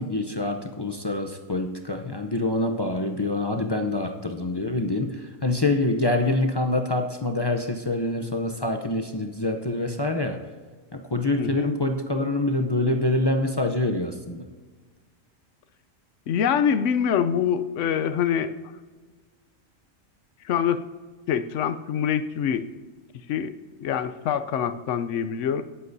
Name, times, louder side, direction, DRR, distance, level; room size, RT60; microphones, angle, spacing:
voice 1, 0.0-10.4 10.9-14.5, left 2 dB, 35° left, 3 dB, 0.4 m, -26 dB
voice 2, 11.4-11.7 16.3-18.5 20.4-20.8 21.3-22.7 23.3-23.5 23.8-25.6, left 8 dB, 70° left, 11 dB, 0.9 m, -25 dB
18.5 x 8.3 x 2.7 m, 1.4 s
omnidirectional pair, 1.4 m